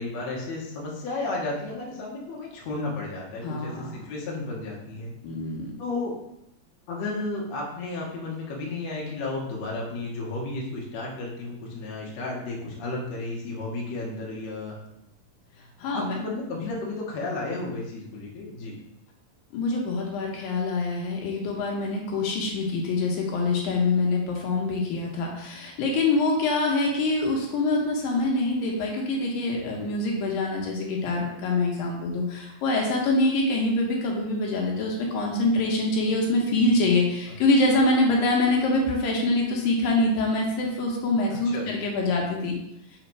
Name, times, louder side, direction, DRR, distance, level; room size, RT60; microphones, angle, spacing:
voice 1, 0.0-5.1 5.8-6.2 6.9-14.7 15.9-18.7 41.5-41.7, left 2 dB, 60° left, -3 dB, 2.1 m, -33 dB
voice 2, 3.4-3.9 5.2-5.7 15.8-16.2 19.5-42.6, left 2 dB, 80° left, 0 dB, 2.7 m, -25 dB
5.1 x 4.0 x 4.6 m, 0.82 s
omnidirectional pair, 4.0 m